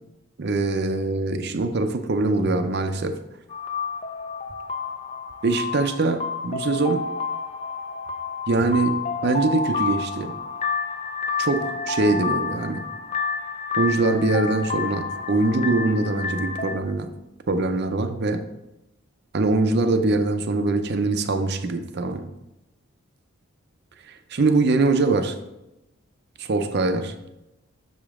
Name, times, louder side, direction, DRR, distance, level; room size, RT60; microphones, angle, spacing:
voice 1, 0.4-3.2 5.4-7.1 8.5-10.4 11.4-12.8 13.8-17.1 17.5-18.5 19.3-22.3 24.1-25.4 26.4-27.1, right 3 dB, 50° right, 8 dB, 0.5 m, -23 dB
sound 1, 3.5-16.8, left 5 dB, 25° left, 0.4 m, -29 dB
6.5 x 5.0 x 3.6 m, 0.94 s
head